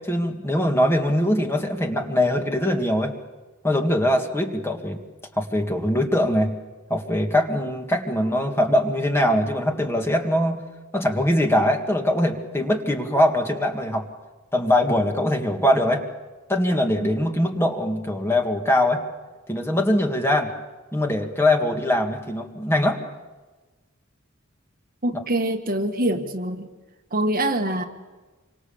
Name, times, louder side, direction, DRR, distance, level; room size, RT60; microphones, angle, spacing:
voice 1, 0.1-3.1 3.6-5.0 5.4-6.5 6.9-10.6 10.9-14.0 14.5-16.0 16.5-19.0 19.5-20.5 20.9-23.0, left 1 dB, 10° left, 3 dB, 2.0 m, -22 dB
voice 2, 25.0-26.7 27.1-27.8, right 1 dB, 45° right, 5 dB, 1.6 m, -24 dB
27.5 x 24.5 x 7.2 m, 1.2 s
head